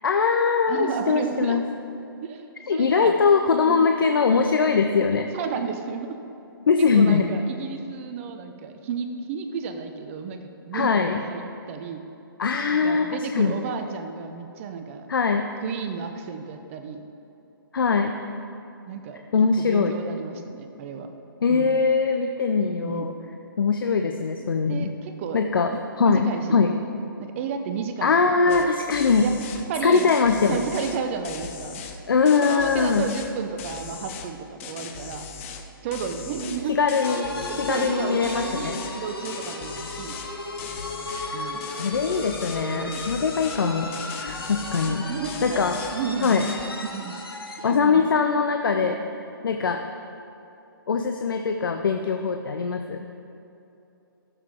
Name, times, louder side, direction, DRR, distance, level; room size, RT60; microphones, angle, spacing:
voice 1, 0.0-1.6 2.7-5.3 6.7-7.3 10.7-11.2 12.4-13.5 15.1-15.5 17.7-18.1 19.3-20.0 21.4-23.1 23.6-24.9 25.3-25.7 26.0-26.7 28.0-29.3 29.8-30.6 32.1-33.1 36.7-37.3 37.5-38.8 41.3-41.5 41.8-43.9 44.2-45.1 45.4-45.8 46.2-46.4 47.6-49.0 49.4-49.8 50.9-53.1, left 5 dB, 65° left, 5 dB, 0.6 m, -22 dB
voice 2, 0.7-1.6 2.2-2.5 2.7-3.2 3.7-4.0 5.2-6.2 6.8-12.0 12.7-15.1 15.6-17.0 18.9-19.2 19.6-21.1 21.5-21.7 22.8-23.1 24.7-25.4 25.7-26.7 27.2-28.1 28.5-28.7 29.2-30.1 30.5-31.8 32.4-35.3 35.8-36.8 37.4-40.1 41.3-41.6 42.7-43.0 44.9-45.6 45.9-46.5 46.8-47.1 47.6-48.0 48.8-49.0, right 6 dB, 35° right, 7 dB, 0.7 m, -32 dB
sound 1, 28.5-28.6 28.9-29.6 29.9-32.0 32.3-33.3 33.6-34.3 34.6-35.6 35.9-38.0 38.2-39.0 39.2-40.3 40.6-41.3 41.6-42.7 42.9-43.6 43.9-45.0 45.2-46.0 46.2-46.6, left 6 dB, 35° left, 0.8 m, -39 dB
sound 2, 37.0-47.8, left 2 dB, 90° left, 1.4 m, -35 dB
14.5 x 7.3 x 3.5 m, 2.8 s
figure-of-eight pair, 130°, 12 cm